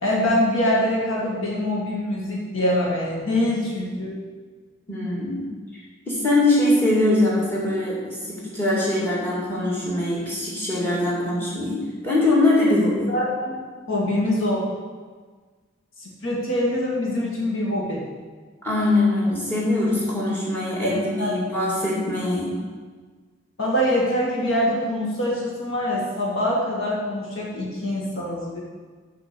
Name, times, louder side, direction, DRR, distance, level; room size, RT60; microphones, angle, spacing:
voice 1, 0.0-4.1 13.1-13.5 13.9-14.7 16.0-18.0 20.8-21.3 23.6-28.6, left 1 dB, 75° left, -3 dB, 1.9 m, -24 dB
voice 2, 4.9-5.4 6.1-11.8 12.0-13.1 18.6-22.5, left 2 dB, 10° left, -6 dB, 2.3 m, -22 dB
7.1 x 5.1 x 6.9 m, 1.5 s
head